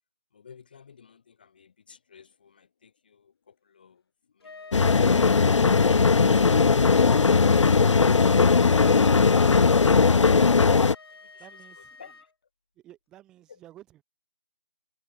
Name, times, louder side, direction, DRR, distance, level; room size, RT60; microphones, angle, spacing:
voice 1, 0.3-6.8 7.5-12.3 13.5-13.6, left 6 dB, 15° left, 1.6 m, -54 dB
Wind instrument woodwind instrument, 4.4-12.3, left 4 dB, 45° left, 1.7 m, -45 dB
sound 1, 4.7-10.9, left 4 dB, 65° left, 0.6 m, -19 dB
voice 2, 11.4-12.0 12.8-14.0, right 13 dB, 5° right, 2.1 m, -51 dB
figure-of-eight pair, 180°, 17 cm